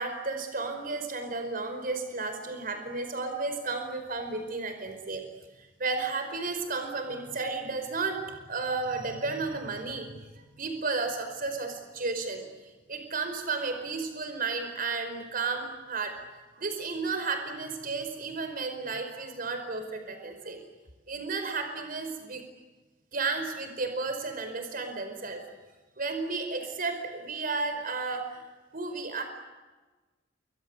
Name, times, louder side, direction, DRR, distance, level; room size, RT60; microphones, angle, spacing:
voice 1, 0.0-5.2 5.6-10.2 10.5-12.4 12.9-16.1 16.5-20.6 21.1-22.4 23.1-25.4 26.0-28.4 28.7-29.2, right 3 dB, 50° right, 7 dB, 5.0 m, -33 dB
29.5 x 24.5 x 8.1 m, 1.2 s
head